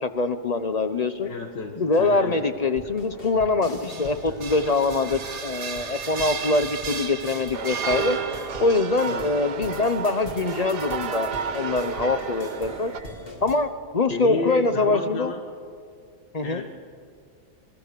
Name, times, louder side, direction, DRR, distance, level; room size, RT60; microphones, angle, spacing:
voice 1, 0.0-1.3 1.8-8.2 8.6-12.9 13.4-15.3 16.3-16.6, left 3 dB, 55° left, 10 dB, 0.4 m, -24 dB
voice 2, 1.2-2.4 9.1-9.3 14.1-15.4 16.4-16.7, left 4 dB, 85° left, 2 dB, 2.2 m, -32 dB
sound 1, 1.9-13.6, left 1 dB, 35° left, 2.8 m, -42 dB
sound 2, 3.7-8.8, right 6 dB, 45° right, 1.2 m, -34 dB
sound 3, 7.5-13.0, right 6 dB, 70° right, 1.7 m, -32 dB
26.0 x 22.0 x 6.7 m, 2.2 s
omnidirectional pair, 1.8 m